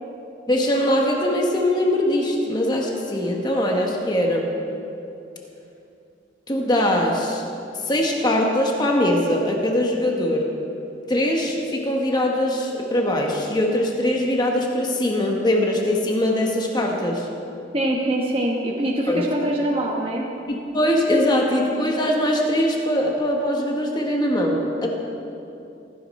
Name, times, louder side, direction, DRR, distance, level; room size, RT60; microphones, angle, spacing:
voice 1, 0.5-4.5 6.5-7.4 7.8-10.5 11.1-17.3 19.1-19.2 20.5-24.9, left 1 dB, 25° left, 0 dB, 1.3 m, -22 dB
voice 2, 17.7-20.3, right 1 dB, 30° right, -2 dB, 1.3 m, -23 dB
15.5 x 15.0 x 4.3 m, 2.8 s
head